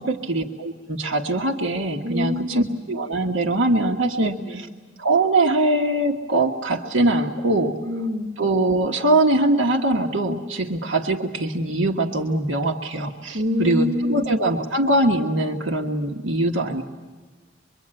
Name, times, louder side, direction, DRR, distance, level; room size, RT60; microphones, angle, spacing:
voice 1, 0.0-4.7 5.0-7.8 8.4-16.8, right 2 dB, 80° right, 2 dB, 1.5 m, -22 dB
voice 2, 2.0-2.7 4.2-4.6 7.9-8.3 13.3-14.2, left 1 dB, 45° right, -1 dB, 2.9 m, -25 dB
24.5 x 24.0 x 8.9 m, 1.4 s
head